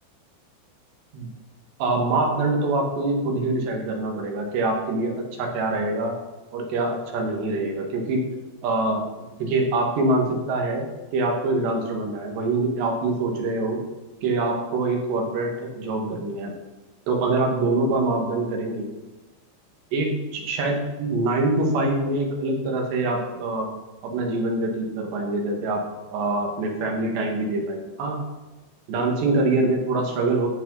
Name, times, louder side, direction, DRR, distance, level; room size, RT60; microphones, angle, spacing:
voice 1, 1.8-6.1 6.5-8.2 8.6-9.0 9.4-10.9 11.1-13.8 14.2-16.5 17.1-18.9 19.9-23.7 24.0-25.8 26.1-28.2 28.9-30.5, right 2 dB, 70° right, 1 dB, 3.8 m, -24 dB
14.0 x 8.9 x 4.1 m, 1.1 s
omnidirectional pair, 5.5 m